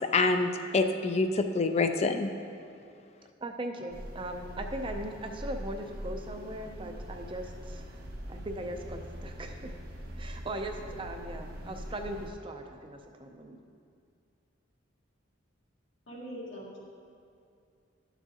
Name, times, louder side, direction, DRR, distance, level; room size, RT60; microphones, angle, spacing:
voice 1, 0.0-2.3, left 3 dB, 35° left, 7 dB, 0.4 m, -26 dB
voice 2, 3.4-8.0 8.3-9.7 10.2-13.6, right 1 dB, 25° right, 4 dB, 0.6 m, -39 dB
sound 1, 3.9-12.3, equal, 50° right, 1.0 m, -42 dB
voice 3, 16.1-16.8, equal, 80° left, -6 dB, 1.7 m, -42 dB
11.5 x 7.0 x 2.9 m, 2.4 s
head